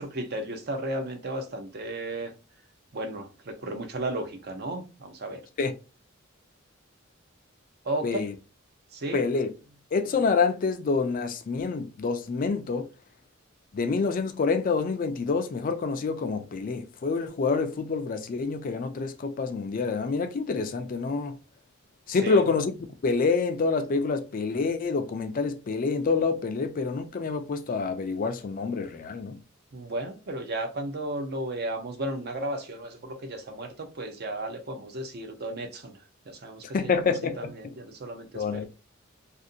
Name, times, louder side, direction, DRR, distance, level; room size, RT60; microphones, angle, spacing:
voice 1, 0.0-2.3 2.9-5.4 7.8-8.3 8.9-9.2 22.2-22.4 29.7-36.0 36.3-37.0 37.4-38.6, right 1 dB, 50° right, 0.6 m, -34 dB
voice 2, 8.0-8.3 9.1-9.5 9.9-12.9 13.7-21.4 22.1-22.7 23.0-29.4 36.7-37.5 38.3-38.6, left 4 dB, 40° left, 0.4 m, -27 dB
2.5 x 2.5 x 2.6 m
head